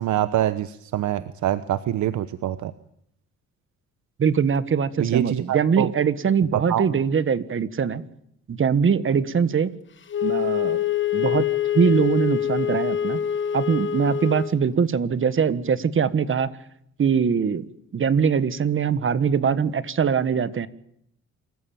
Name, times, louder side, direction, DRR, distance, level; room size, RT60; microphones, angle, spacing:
voice 1, 0.0-2.7 5.0-5.9 6.5-7.0, right 12 dB, 70° right, 13 dB, 1.0 m, -25 dB
voice 2, 4.2-8.0 8.5-9.8 10.2-10.8 11.1-11.4 11.7-13.2 13.5-16.5 17.0-17.7 17.9-20.7, right 6 dB, 45° right, 14 dB, 1.5 m, -22 dB
Wind instrument woodwind instrument, 10.1-14.6, left 10 dB, 40° left, 1.4 m, -25 dB
26.5 x 15.0 x 8.9 m, 0.71 s
cardioid pair, 90°, 30 cm